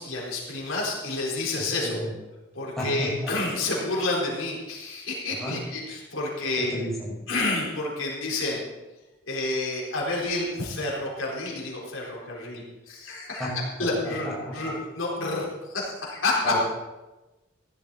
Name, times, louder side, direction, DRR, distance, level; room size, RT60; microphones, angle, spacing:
voice 1, 0.0-2.0 2.5-6.7 7.3-8.6 9.2-13.5 13.8-14.3 14.5-16.5, left 2 dB, 85° left, -3 dB, 4.2 m, -29 dB
voice 2, 2.8-3.3 5.4-5.6 6.6-7.1 13.4-13.5 14.0-14.7 16.4-16.6, equal, ahead, -6 dB, 5.1 m, -32 dB
15.5 x 12.0 x 4.2 m, 1.1 s
head